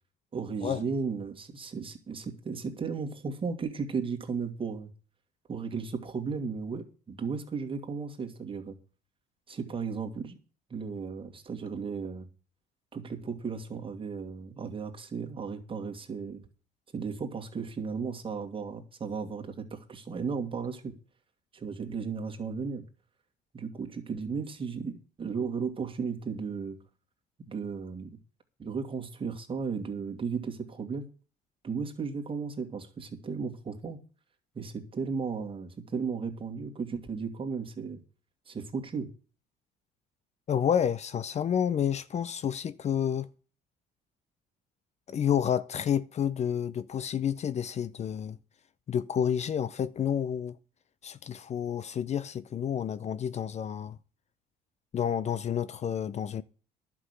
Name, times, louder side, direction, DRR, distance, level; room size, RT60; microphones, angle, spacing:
voice 1, 0.3-4.9 5.5-8.8 9.5-10.4 10.7-12.3 12.9-16.5 16.9-21.0 21.5-22.8 23.5-26.8 27.5-28.2 28.6-31.1 31.6-34.0 34.5-38.0 38.5-39.1, right 5 dB, 30° right, 2.5 m, -35 dB
voice 2, 40.5-43.3 45.1-48.4 48.9-50.6 51.0-54.0 54.9-56.4, left 8 dB, 40° left, 0.6 m, -29 dB
11.0 x 6.2 x 8.4 m
cardioid pair, 110°, 17 cm